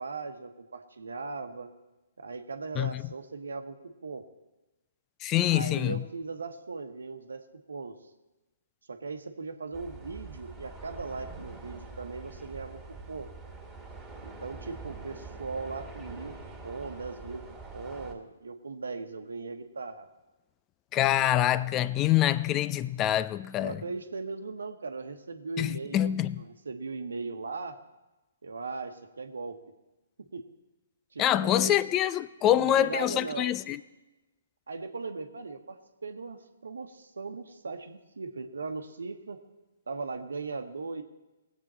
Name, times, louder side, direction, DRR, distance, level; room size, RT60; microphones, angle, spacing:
voice 1, 0.0-1.7 2.2-4.3 5.5-7.4 7.7-8.0 8.9-13.3 14.2-16.3 16.6-17.4 17.7-20.1 23.6-26.1 26.4-27.8 28.4-29.6 30.3-30.4 31.1-31.8 32.4-33.5 34.7-39.4 39.9-41.0, right 4 dB, 80° right, 1.2 m, -38 dB
voice 2, 5.2-6.0 20.9-23.8 25.6-26.4 31.2-33.8, left 12 dB, 25° left, 0.4 m, -25 dB
sound 1, 9.7-18.1, right 3 dB, ahead, 2.3 m, -45 dB
19.5 x 8.2 x 4.3 m
figure-of-eight pair, 130°, 0 cm